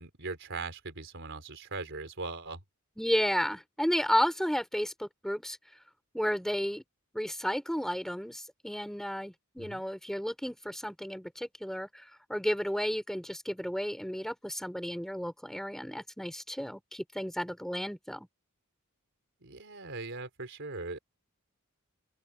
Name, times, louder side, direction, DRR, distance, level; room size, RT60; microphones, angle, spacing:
voice 1, 0.0-2.6 9.6-9.8 19.4-21.0, right 3 dB, 60° right, 4.1 m, -40 dB
voice 2, 3.0-5.6 6.1-6.8 7.1-18.3, equal, ahead, 4.5 m, -32 dB
open air
head